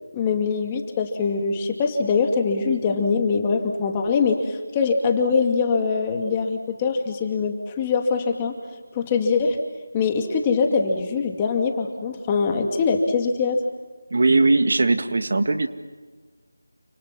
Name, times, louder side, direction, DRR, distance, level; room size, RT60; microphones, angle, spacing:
voice 1, 0.1-8.6 8.9-9.6 9.9-13.6, left 5 dB, 15° left, 3 dB, 2.4 m, -23 dB
voice 2, 14.1-15.7, right 3 dB, 55° right, 9 dB, 1.8 m, -19 dB
29.5 x 26.5 x 6.1 m, 1.4 s
figure-of-eight pair, 170°, 0 cm